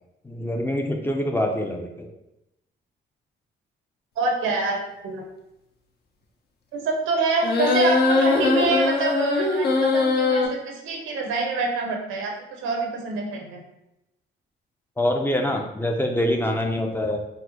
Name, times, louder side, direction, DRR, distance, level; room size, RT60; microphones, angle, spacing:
voice 1, 0.2-2.1 15.0-17.2, left 1 dB, 10° left, 3 dB, 0.4 m, -25 dB
voice 2, 4.2-5.2 6.7-13.6, right 3 dB, 85° right, 2 dB, 0.7 m, -26 dB
sound 1, 7.4-10.5, left 3 dB, 55° left, 0.6 m, -21 dB
4.1 x 2.1 x 2.8 m, 0.88 s
cardioid pair, 90°, 20 cm